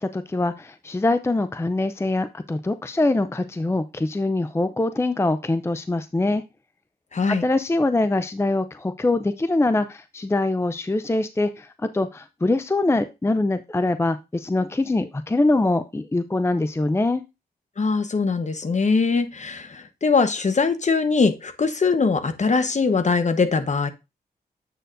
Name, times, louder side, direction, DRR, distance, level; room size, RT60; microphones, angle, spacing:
voice 1, 0.0-6.4 7.3-17.2, left 2 dB, 15° left, 12 dB, 0.5 m, -23 dB
voice 2, 7.1-7.4 17.8-23.9, left 4 dB, 45° left, 10 dB, 1.0 m, -22 dB
7.9 x 6.8 x 2.5 m, 0.24 s
cardioid pair, 60°, 17 cm